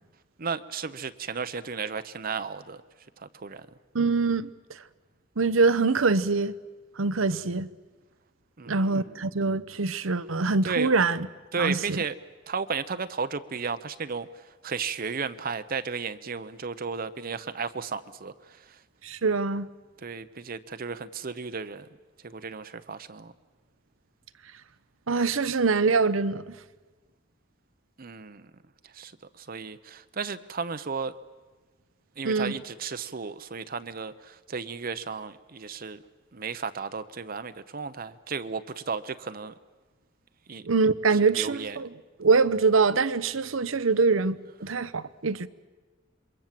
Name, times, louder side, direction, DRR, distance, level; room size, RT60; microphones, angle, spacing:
voice 1, 0.4-2.8 3.2-3.7 8.6-9.1 10.6-10.9 11.5-12.1 12.5-14.3 14.6-18.3 20.0-21.9 22.2-23.3 28.0-28.4 28.9-29.1 29.4-31.1 32.2-36.0 36.3-39.5 40.5-40.6 41.4-41.8, right 5 dB, 45° right, 0.8 m, -34 dB
voice 2, 3.9-4.5 5.4-6.5 7.0-7.7 8.7-11.3 11.6-12.0 19.0-19.7 25.1-26.5 32.2-32.6 40.6-41.9 42.2-45.5, right 4 dB, 90° right, 0.9 m, -24 dB
27.5 x 23.0 x 7.5 m
head